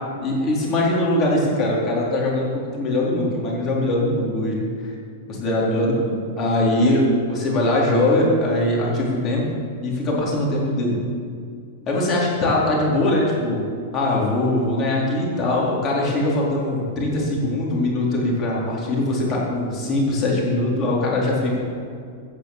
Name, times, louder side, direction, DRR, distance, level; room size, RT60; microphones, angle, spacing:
voice 1, 0.2-4.9 5.3-9.4 9.8-11.0 11.9-13.6 13.9-21.6, left 1 dB, 30° left, -4 dB, 4.2 m, -21 dB
16.5 x 6.6 x 7.5 m, 2.3 s
hypercardioid pair, 135°, 0 cm